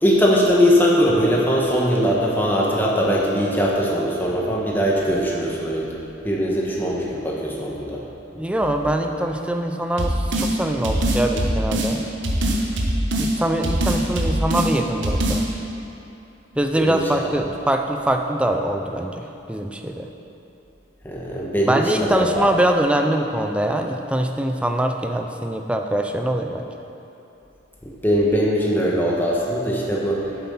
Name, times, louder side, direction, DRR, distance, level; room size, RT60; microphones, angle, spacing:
voice 1, 0.0-5.9 6.2-8.0 16.8-17.0 21.0-22.5 27.8-30.2, equal, 10° left, -4 dB, 1.3 m, -20 dB
voice 2, 8.3-12.0 13.2-15.5 16.6-20.1 21.7-26.6, right 1 dB, 5° right, 4 dB, 0.5 m, -23 dB
Hard Drum & Bass loop, 10.0-10.5 10.8-11.9 12.2-13.3 13.6-14.7 15.0-15.4, right 1 dB, 90° right, 1.2 m, -22 dB
8.7 x 7.6 x 5.6 m, 2.9 s
head